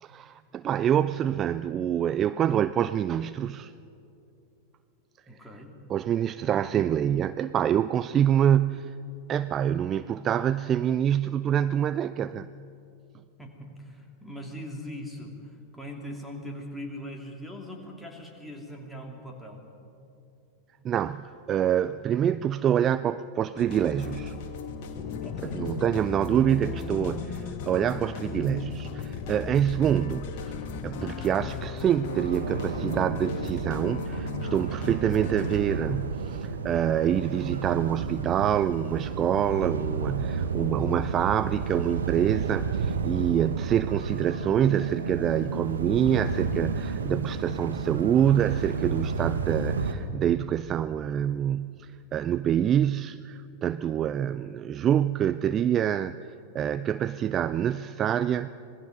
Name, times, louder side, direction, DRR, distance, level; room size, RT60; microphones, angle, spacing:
voice 1, 0.0-3.7 5.9-8.9 9.3-12.5 20.8-24.3 25.4-56.2 56.5-58.5, right 10 dB, 30° right, 14 dB, 0.4 m, -26 dB
voice 2, 5.3-5.7 13.4-15.3 15.7-19.6 25.2-25.6, equal, ahead, 0 dB, 3.0 m, -40 dB
sound 1, 23.6-35.6, left 4 dB, 45° left, 2.0 m, -37 dB
sound 2, 24.9-31.7, left 8 dB, 30° left, 0.9 m, -40 dB
sound 3, 32.1-49.9, right 5 dB, 70° right, 1.3 m, -31 dB
26.0 x 19.5 x 5.3 m, 2.6 s
figure-of-eight pair, 90°, 0 cm